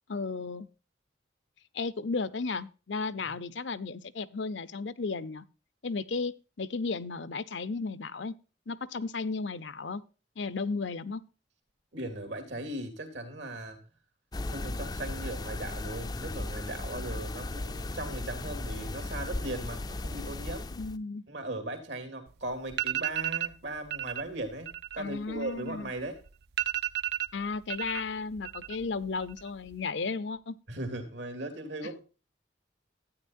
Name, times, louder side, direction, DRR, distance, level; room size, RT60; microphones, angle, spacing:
voice 1, 0.1-0.7 1.7-5.5 5.8-8.3 8.7-10.0 10.4-11.2 20.8-21.2 25.0-25.9 27.3-30.5, left 4 dB, 75° left, 0.6 m, -34 dB
voice 2, 11.9-13.9 14.3-20.7 21.3-26.2 30.7-32.0, right 1 dB, 75° right, 2.7 m, -38 dB
sound 1, 14.3-21.0, left 2 dB, 20° left, 0.4 m, -36 dB
sound 2, 22.3-22.4 22.7-23.5 23.9-24.2 24.5-26.0 26.3-26.4 26.6-28.0 28.3-28.9 29.2-29.7, right 13 dB, 55° right, 0.4 m, -33 dB
12.5 x 9.3 x 2.6 m
head